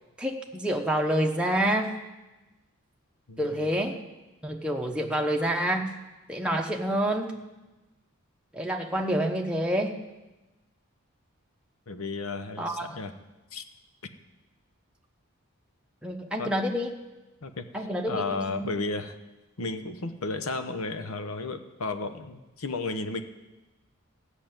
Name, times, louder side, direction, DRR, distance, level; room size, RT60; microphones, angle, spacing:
voice 1, 0.2-1.9 3.4-4.0 4.4-5.9 6.3-7.4 8.5-10.0 12.6-13.0 16.0-16.9 17.7-18.2 18.5-18.7, equal, 5° right, 1 dB, 0.9 m, -27 dB
voice 2, 3.3-3.7 11.9-13.1 13.5-13.6 16.4-16.5 17.4-19.1 19.6-23.2, left 3 dB, 80° left, 9 dB, 1.0 m, -33 dB
14.0 x 6.6 x 9.0 m, 1.1 s
head